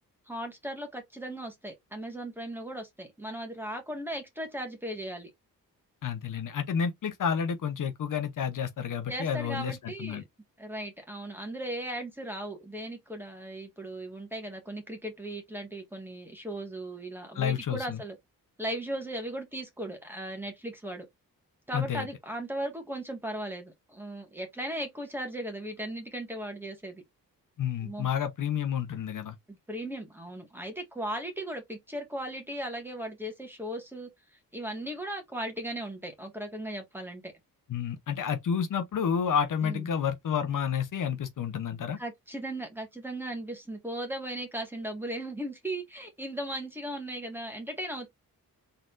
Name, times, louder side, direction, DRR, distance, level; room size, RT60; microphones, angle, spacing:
voice 1, 0.3-5.3 9.1-10.2 10.6-18.1 18.6-21.1 21.7-27.0 27.8-28.1 29.5-34.1 34.5-37.3 39.6-39.9 42.0-48.1, right 1 dB, 5° right, 1.6 m, -37 dB
voice 2, 6.0-10.2 17.3-18.0 21.7-22.1 27.6-29.4 37.7-42.0, left 7 dB, 60° left, 0.8 m, -30 dB
4.1 x 3.8 x 2.5 m
wide cardioid pair, 115°, 35 cm